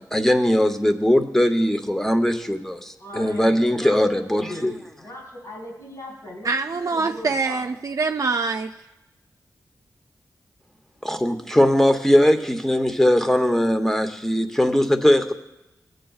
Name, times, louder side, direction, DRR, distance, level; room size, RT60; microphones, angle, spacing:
voice 1, 0.0-4.7 11.0-15.3, left 1 dB, 5° left, 7 dB, 0.8 m, -20 dB
voice 2, 3.0-6.5 6.8-7.7, left 1 dB, 60° left, -5 dB, 3.8 m, -38 dB
voice 3, 6.4-8.7, right 4 dB, 55° right, 5 dB, 0.4 m, -24 dB
16.5 x 7.7 x 2.4 m, 0.98 s
wide cardioid pair, 70°, 7 cm